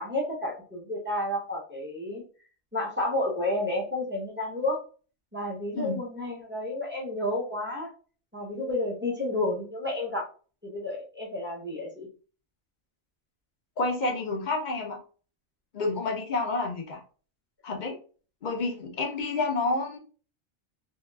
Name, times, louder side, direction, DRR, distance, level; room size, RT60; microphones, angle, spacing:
voice 1, 0.0-2.2 2.7-4.8 5.3-7.9 8.3-10.3 10.6-12.1, left 1 dB, 15° right, -3 dB, 0.5 m, -31 dB
voice 2, 13.8-15.0 15.7-17.0 17.6-18.0 18.4-20.0, left 3 dB, 55° left, 1 dB, 0.5 m, -29 dB
2.8 x 2.3 x 2.2 m, 0.38 s
omnidirectional pair, 1.4 m